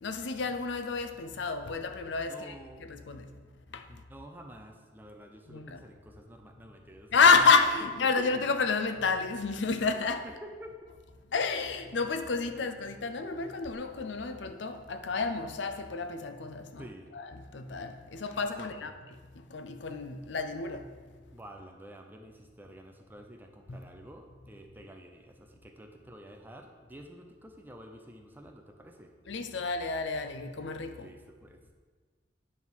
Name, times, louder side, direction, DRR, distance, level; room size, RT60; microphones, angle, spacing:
voice 1, 0.0-2.5 2.8-3.3 3.7-3.8 5.5-5.8 7.1-10.3 11.3-16.9 17.1-18.9 19.3-20.9 23.7-23.8 29.3-31.1, left 4 dB, 70° left, 0.6 m, -29 dB
voice 2, 2.2-2.8 3.9-7.4 7.8-8.3 10.2-10.8 12.5-12.7 16.8-17.1 18.6-19.0 21.3-29.1 30.9-31.7, equal, 10° right, 0.6 m, -49 dB
9.6 x 3.6 x 6.2 m
head